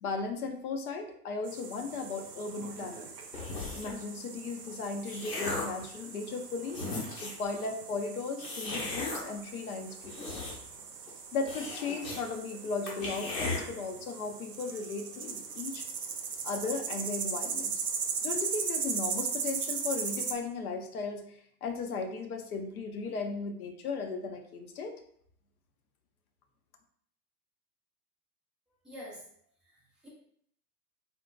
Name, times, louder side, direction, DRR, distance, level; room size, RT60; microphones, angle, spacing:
voice 1, 0.0-3.1 3.7-6.8 7.2-10.4 11.3-15.9 16.4-17.8 18.2-25.0, left 4 dB, 65° left, 5 dB, 0.6 m, -36 dB
sound 1, 1.4-20.3, right 6 dB, 80° right, 0.6 m, -38 dB
sound 2, 3.3-4.0 4.7-5.8 6.4-6.5 6.7-7.5 8.4-9.2 9.9-10.8 11.1-11.2 11.5-12.2 12.5-12.6 12.9-13.6, left 2 dB, 80° left, 1.1 m, -36 dB
voice 2, 28.8-29.2 29.6-30.1, left 1 dB, ahead, -7 dB, 0.4 m, -47 dB
3.8 x 2.1 x 2.2 m, 0.65 s
figure-of-eight pair, 95°, 48 cm